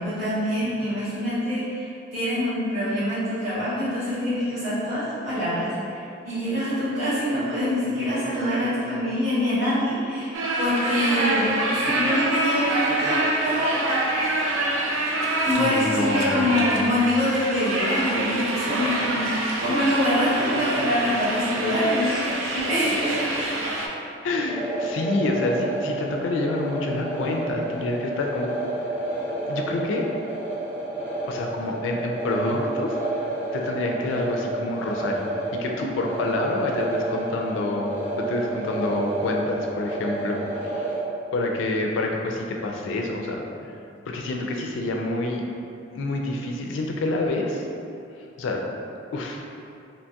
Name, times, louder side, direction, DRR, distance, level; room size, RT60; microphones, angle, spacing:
voice 1, 0.0-1.8 2.1-10.3 10.6-13.9 15.4-23.3, left 1 dB, 35° right, -15 dB, 1.3 m, -25 dB
sound 1, 10.3-23.9, right 2 dB, 80° right, 0.4 m, -26 dB
voice 2, 15.6-17.0 22.6-23.1 24.2-28.5 29.5-30.1 31.3-33.0 33.5-40.9 41.3-43.4 44.1-45.5 45.9-47.7 48.4-48.6 49.1-49.4, left 2 dB, 70° left, 1 dB, 0.3 m, -28 dB
sound 2, 24.5-41.0, right 2 dB, 10° right, 0.4 m, -30 dB
2.7 x 2.7 x 2.2 m, 2.5 s
head